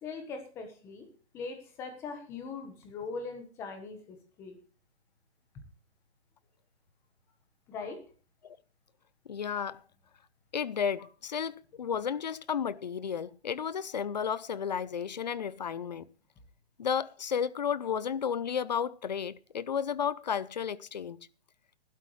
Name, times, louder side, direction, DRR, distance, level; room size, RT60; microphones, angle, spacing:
voice 1, 0.0-1.1 1.3-4.6 7.7-8.0, left 4 dB, 10° left, 1.1 m, -41 dB
voice 2, 9.3-9.8 10.5-16.1 16.8-21.3, left 7 dB, 40° left, 0.5 m, -33 dB
15.5 x 12.0 x 3.2 m
hypercardioid pair, 175°, 32 cm